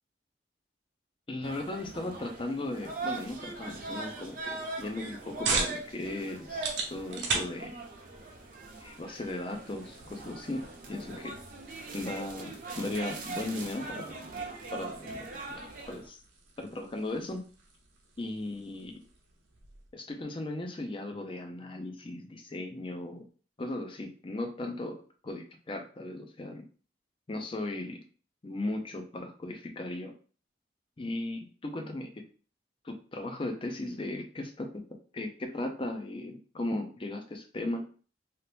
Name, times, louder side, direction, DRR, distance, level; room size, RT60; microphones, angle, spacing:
voice 1, 1.3-7.8 8.8-11.4 11.9-14.2 14.7-15.1 15.5-16.2 16.6-17.4 18.2-19.0 19.9-23.3 23.6-26.6 27.3-28.0 28.4-30.1 31.0-32.3 32.8-34.8 35.1-37.9, left 2 dB, 30° left, 5 dB, 0.4 m, -37 dB
sound 1, 1.4-16.1, right 3 dB, 45° right, 0.6 m, -41 dB
sound 2, 4.8-19.9, right 4 dB, 85° right, 0.8 m, -40 dB
2.8 x 2.5 x 3.3 m, 0.40 s
head